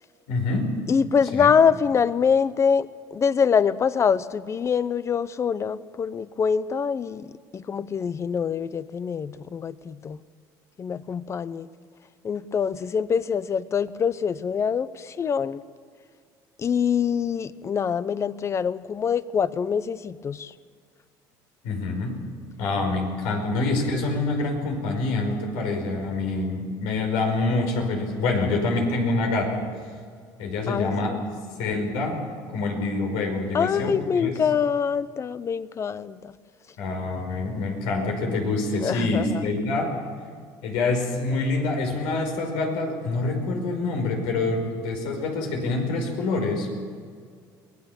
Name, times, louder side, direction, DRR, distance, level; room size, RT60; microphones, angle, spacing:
voice 1, 0.3-0.7 1.3-1.5 21.6-22.1 22.6-29.7 30.4-31.2 31.6-32.2 32.5-34.3 36.8-39.9 40.6-46.7, left 3 dB, 90° left, 3 dB, 5.2 m, -26 dB
voice 2, 0.9-10.2 10.8-11.7 12.2-15.6 16.6-20.5 30.7-31.2 33.5-36.3 38.8-39.5, left 6 dB, 35° left, 16 dB, 0.8 m, -24 dB
23.0 x 19.0 x 7.2 m, 2.1 s
cardioid pair, 115°, 9 cm